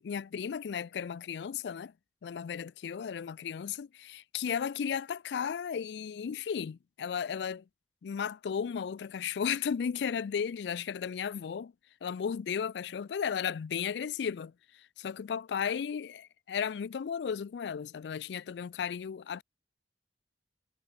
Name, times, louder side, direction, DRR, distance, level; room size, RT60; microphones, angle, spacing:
voice 1, 0.0-1.9 2.2-7.6 8.0-11.7 12.0-19.4, left 7 dB, 70° left, 0.4 m, -35 dB
head